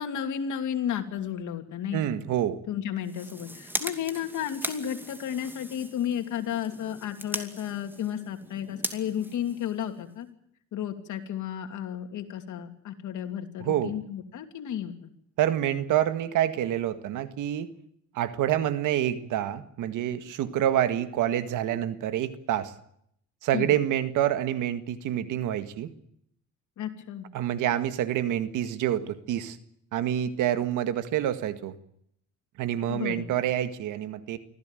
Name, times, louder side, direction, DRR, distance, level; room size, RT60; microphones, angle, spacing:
voice 1, 0.0-2.2 2.7-10.3 10.7-14.9 23.5-23.7 26.8-27.3 32.9-33.3, left 9 dB, 75° left, 7 dB, 2.9 m, -33 dB
voice 2, 1.9-2.6 13.6-13.9 15.4-17.7 18.1-22.7 23.4-25.9 27.3-29.6 29.9-31.8 32.6-34.4, right 11 dB, 90° right, 11 dB, 1.9 m, -27 dB
sound 1, 3.0-10.2, right 1 dB, 5° right, 2.5 m, -39 dB
24.5 x 15.5 x 9.2 m, 0.71 s
cardioid pair, 90°, 30 cm